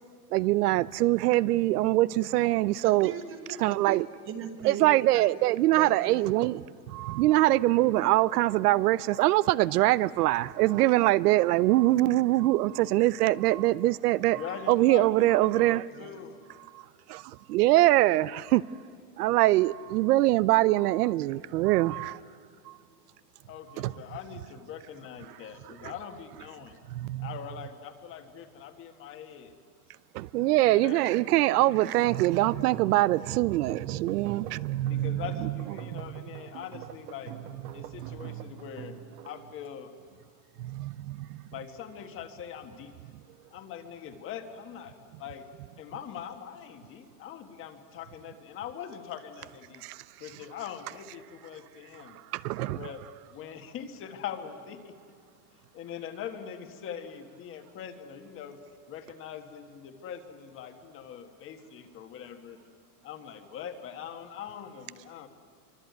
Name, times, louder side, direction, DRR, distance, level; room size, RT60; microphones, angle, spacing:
voice 1, 0.3-3.1 3.6-4.1 4.6-6.6 6.9-14.4 14.7-15.8 16.7-16.8 17.1-18.6 19.2-22.2 22.7-22.8 23.8-23.9 26.9-27.3 30.1-35.5 35.9-36.0 40.6-41.4 49.8-50.0 52.3-52.8, right 17 dB, 80° right, 0.7 m, -24 dB
voice 2, 2.8-5.3 5.7-6.8 15.9-16.2, right 7 dB, 25° right, 1.8 m, -40 dB
voice 3, 14.4-16.4 23.5-26.8 27.2-29.5 30.6-31.1 34.8-37.4 37.7-39.0 39.2-39.9 41.5-42.9 43.5-45.5 45.8-49.8 50.2-52.2 52.7-53.0 53.3-54.9 55.7-58.6 58.9-62.6 63.0-65.3, left 8 dB, 25° left, 1.6 m, -42 dB
sound 1, 31.9-39.5, right 10 dB, 45° right, 1.5 m, -45 dB
25.5 x 24.5 x 9.3 m
supercardioid pair, 160°, 46 cm